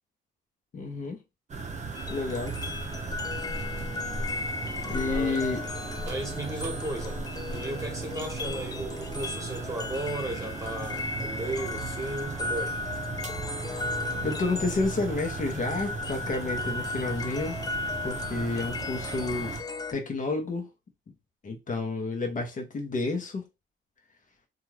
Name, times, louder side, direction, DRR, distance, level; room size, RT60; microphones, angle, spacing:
voice 1, 0.7-1.2 2.1-2.6 4.9-5.6 14.2-17.6 18.0-19.5 19.9-20.7 21.4-23.4, left 3 dB, 40° left, 0.8 m, -30 dB
sound 1, 1.5-19.6, right 4 dB, 35° right, 0.6 m, -37 dB
sound 2, 1.9-19.9, left 3 dB, 20° left, 0.3 m, -36 dB
voice 2, 5.0-5.4 6.0-12.8, right 2 dB, 15° right, 1.1 m, -35 dB
2.6 x 2.3 x 3.1 m
cardioid pair, 90°, 20 cm